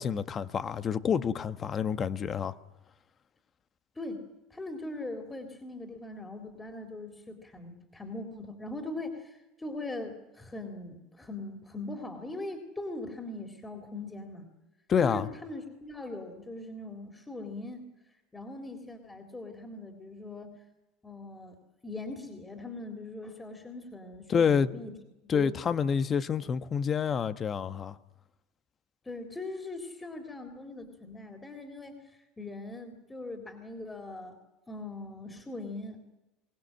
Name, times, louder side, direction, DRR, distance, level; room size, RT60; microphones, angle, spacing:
voice 1, 0.0-2.5 14.9-15.3 24.3-24.7 25.3-28.0, left 7 dB, 35° left, 1.2 m, -28 dB
voice 2, 4.5-14.5 15.0-17.9 18.3-20.6 21.0-21.6 21.8-24.9 25.2-25.5 29.0-34.4 34.7-36.0, left 2 dB, 15° left, 3.7 m, -41 dB
23.5 x 19.5 x 7.6 m
hypercardioid pair, 85°, 0 cm